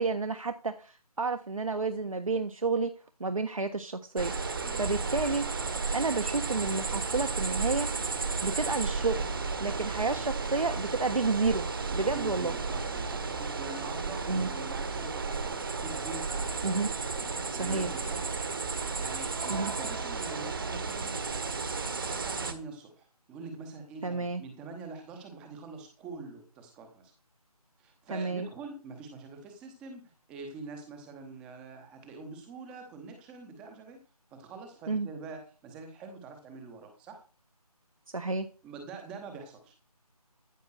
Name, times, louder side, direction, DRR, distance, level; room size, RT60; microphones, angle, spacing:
voice 1, 0.0-2.9 3.2-4.3 4.8-5.4 5.9-7.9 8.4-9.3 9.6-11.7 11.9-12.5 14.3-14.5 16.6-16.9 17.6-17.9 19.5-19.7 24.0-24.4 28.1-28.5 34.9-35.1 38.1-38.5, right 3 dB, 60° right, 6 dB, 1.3 m, -30 dB
sound 1, 4.2-22.5, right 4 dB, 35° right, 1.4 m, -33 dB
voice 2, 11.9-16.5 17.1-18.2 18.6-21.1 21.9-27.1 27.8-34.0 34.3-37.2 38.6-39.7, right 4 dB, 5° right, 6 dB, 0.9 m, -45 dB
14.5 x 5.5 x 6.3 m, 0.35 s
figure-of-eight pair, 160°, 20 cm